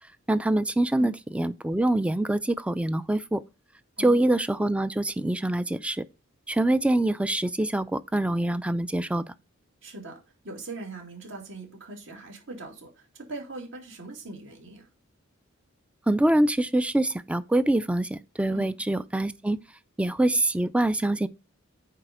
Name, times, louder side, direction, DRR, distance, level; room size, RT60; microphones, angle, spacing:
voice 1, 0.3-3.4 4.0-6.0 6.5-9.2 16.1-19.6 20.0-21.3, right 1 dB, 5° right, 0.3 m, -25 dB
voice 2, 9.8-10.2 10.4-14.9 18.5-18.7, right 2 dB, 65° right, 2.5 m, -41 dB
9.1 x 4.1 x 5.0 m
head